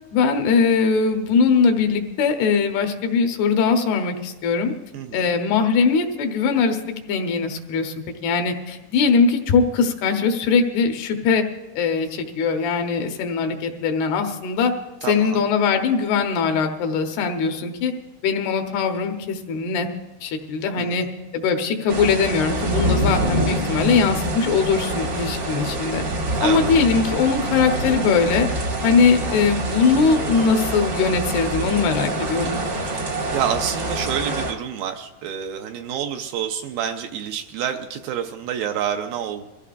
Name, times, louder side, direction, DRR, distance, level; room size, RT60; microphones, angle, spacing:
voice 1, 0.1-4.7 5.1-7.9 8.2-11.4 11.8-14.7 15.0-17.9 18.2-19.9 20.2-21.1 21.3-26.0 26.4-28.5 28.8-32.6, left 5 dB, 85° left, 5 dB, 3.1 m, -21 dB
voice 2, 4.9-5.3 15.0-15.4 20.8-21.1 26.4-26.7 32.9-39.4, right 9 dB, 80° right, 5 dB, 2.2 m, -28 dB
sound 1, 21.9-34.5, right 1 dB, 50° right, 1.2 m, -25 dB
23.0 x 15.5 x 2.5 m, 1.0 s
omnidirectional pair, 4.5 m